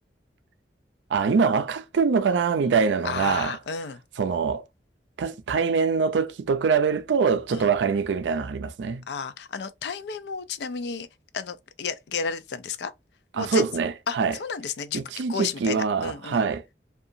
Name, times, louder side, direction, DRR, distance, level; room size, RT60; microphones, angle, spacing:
voice 1, 1.1-3.6 4.2-4.6 5.2-9.0 13.4-14.4 14.9-16.7, right 5 dB, 90° right, 0.4 m, -24 dB
voice 2, 3.0-4.0 7.5-7.7 9.1-11.1 11.3-12.9 13.3-13.7 14.1-15.0 15.3-16.4, left 5 dB, 75° left, 0.4 m, -32 dB
2.7 x 2.3 x 2.5 m
head